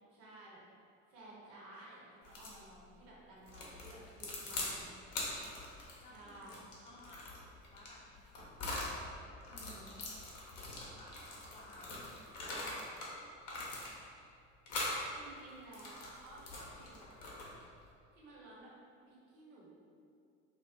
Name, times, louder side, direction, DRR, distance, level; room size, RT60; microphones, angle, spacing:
voice 1, 0.1-0.6 1.1-5.0 6.1-6.6 9.5-10.0 15.1-17.1 18.1-18.7 19.1-19.8, right 2 dB, 60° right, -6 dB, 0.8 m, -54 dB
sound 1, 2.2-2.6 3.5-4.7 5.1-8.9 9.4-13.1 13.4-14.2 14.7-15.0 15.5-17.7, left 2 dB, 50° left, 0.6 m, -43 dB
voice 2, 6.0-6.6 6.8-10.1 10.4-11.1 11.5-12.4 12.7-13.8, left 1 dB, 15° left, -5 dB, 0.4 m, -60 dB
2.5 x 2.0 x 2.4 m, 2.4 s
figure-of-eight pair, 65°, 39 cm